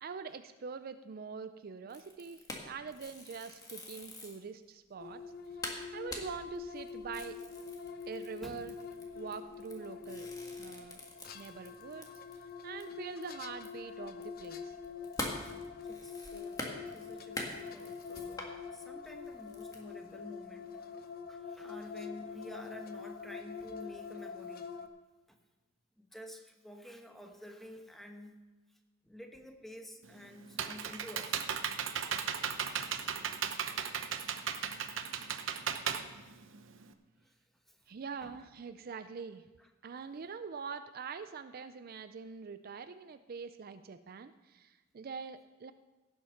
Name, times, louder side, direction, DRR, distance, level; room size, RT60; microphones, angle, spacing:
voice 1, 0.0-5.2 5.5-5.6 5.9-7.4 8.1-8.7 9.1-10.3 10.6-11.0 11.3-12.1 12.6-14.7 37.9-39.5 39.8-45.7, right 5 dB, 45° right, 11 dB, 0.4 m, -44 dB
sound 1, 1.9-4.4 4.9-5.0 5.3-5.4 5.6-12.5 12.8-12.9 13.2-18.5 19.0-19.8, left 2 dB, 20° left, 1.6 m, -44 dB
sound 2, 5.0-24.9, left 5 dB, 50° left, 0.8 m, -45 dB
voice 2, 15.8-24.7 25.3-25.4 26.0-28.4 29.0-31.4 35.1-35.2 37.2-37.4 37.7-37.8 38.2-38.4 39.6-39.7, left 1 dB, ahead, 3 dB, 1.1 m, -51 dB
Computer keyboard, 30.0-36.9, right 7 dB, 70° right, 0.8 m, -36 dB
16.5 x 7.3 x 5.7 m, 1.2 s
head